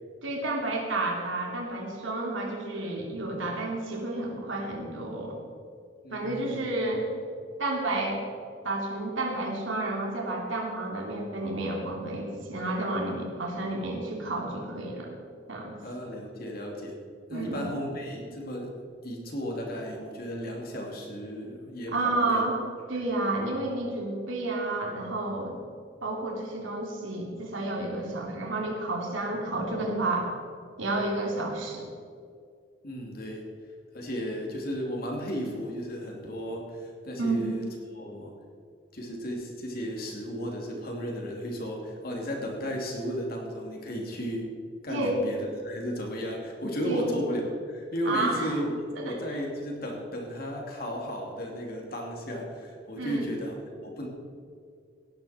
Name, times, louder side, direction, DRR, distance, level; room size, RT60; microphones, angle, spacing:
voice 1, 0.2-5.4 6.1-7.1 7.6-8.2 8.6-15.2 15.5-15.7 17.3-17.7 21.9-22.6 22.9-25.6 26.0-30.3 30.8-31.9 37.2-37.5 44.9-45.2 46.8-47.1 48.0-48.6 49.0-49.2 53.0-53.3, right 2 dB, 90° right, -1 dB, 3.0 m, -30 dB
voice 2, 6.0-6.6 15.8-17.0 17.3-18.7 19.0-22.4 32.8-33.5 33.9-37.6 37.9-38.3 38.9-44.5 44.8-47.4 47.7-53.5 53.8-54.1, equal, 50° left, 0 dB, 2.7 m, -34 dB
17.5 x 11.0 x 4.4 m, 2.2 s
head